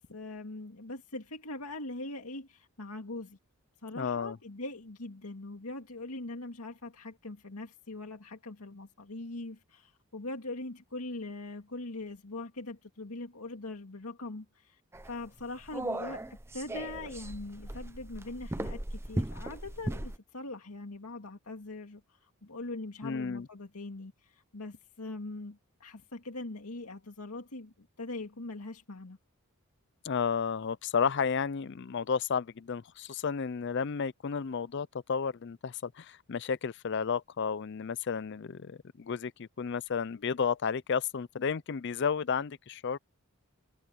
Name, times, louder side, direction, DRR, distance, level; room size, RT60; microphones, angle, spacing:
voice 1, 0.0-3.4 3.8-29.2, left 2 dB, 85° left, 2.1 m, -42 dB
voice 2, 4.0-4.4 23.0-23.5 30.0-43.0, left 6 dB, 50° left, 0.4 m, -32 dB
sound 1, 14.9-20.2, right 1 dB, 10° right, 0.6 m, -37 dB
head